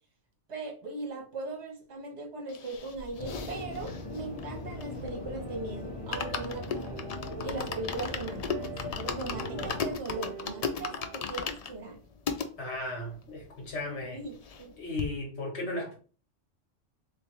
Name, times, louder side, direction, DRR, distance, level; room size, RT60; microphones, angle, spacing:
voice 1, 0.5-7.1 7.4-8.7 9.0-12.0 14.1-14.7, right 3 dB, 65° right, 1.3 m, -39 dB
sound 1, 2.5-5.3 5.6-5.7 5.9-12.5 13.1-13.2 13.3-13.4 13.7-14.7 15.0-15.1, left 6 dB, 85° left, 0.3 m, -37 dB
sound 2, 3.2-10.0, left 2 dB, 35° left, 0.7 m, -40 dB
sound 3, 3.4-11.2, right 8 dB, 85° right, 0.9 m, -47 dB
voice 2, 12.6-14.2 14.8-16.0, left 2 dB, 65° left, 1.7 m, -35 dB
3.3 x 3.2 x 3.1 m
omnidirectional pair, 1.2 m